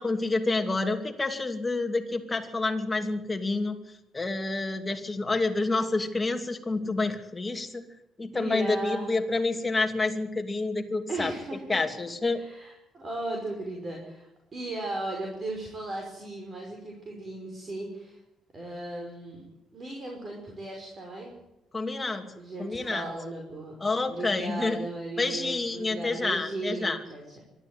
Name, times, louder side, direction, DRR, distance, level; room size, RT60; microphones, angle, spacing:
voice 1, 0.0-3.8 4.1-7.8 8.2-11.3 11.7-12.4 21.7-22.3 22.6-23.1 23.8-24.8 25.2-27.0, left 3 dB, 20° left, 5 dB, 2.6 m, -28 dB
voice 2, 8.3-9.2 11.1-11.8 12.3-18.2 18.5-19.4 19.7-21.3 22.4-23.8 24.1-27.4, right 2 dB, 35° right, 0 dB, 5.6 m, -36 dB
24.5 x 13.0 x 9.5 m, 0.92 s
cardioid pair, 115°, 0 cm